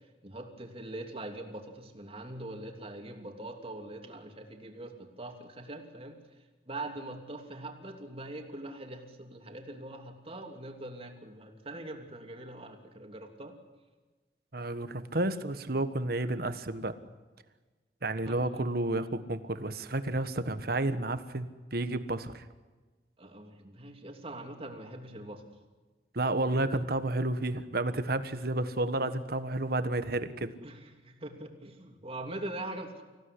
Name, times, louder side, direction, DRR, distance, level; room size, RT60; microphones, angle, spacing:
voice 1, 0.2-6.2 6.7-13.6 18.2-18.6 23.2-25.4 30.6-33.0, right 2 dB, 35° right, 4 dB, 2.9 m, -42 dB
voice 2, 14.5-16.9 18.0-22.4 26.1-30.5, right 2 dB, 60° right, 11 dB, 1.4 m, -31 dB
26.0 x 16.5 x 9.9 m, 1.3 s
head